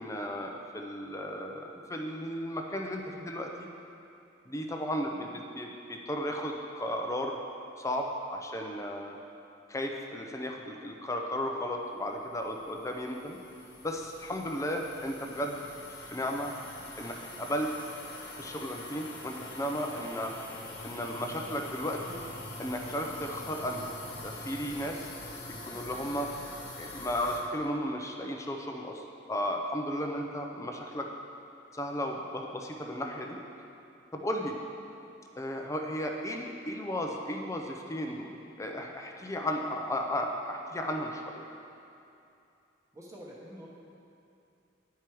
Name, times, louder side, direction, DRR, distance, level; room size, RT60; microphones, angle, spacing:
voice 1, 0.0-3.7 4.5-7.4 7.8-9.2 9.7-13.4 13.8-15.6 16.1-16.5 17.0-17.7 18.4-20.3 20.8-22.2 22.6-23.9 24.2-25.1 25.6-26.3 26.8-31.1 31.7-33.4 34.1-34.6 35.4-41.4, equal, 15° left, 2 dB, 0.5 m, -34 dB
sound 1, 12.2-27.4, left 2 dB, 50° left, 1.3 m, -44 dB
voice 2, 42.9-43.7, equal, 15° right, -4 dB, 1.0 m, -46 dB
10.5 x 4.7 x 4.5 m, 2.7 s
head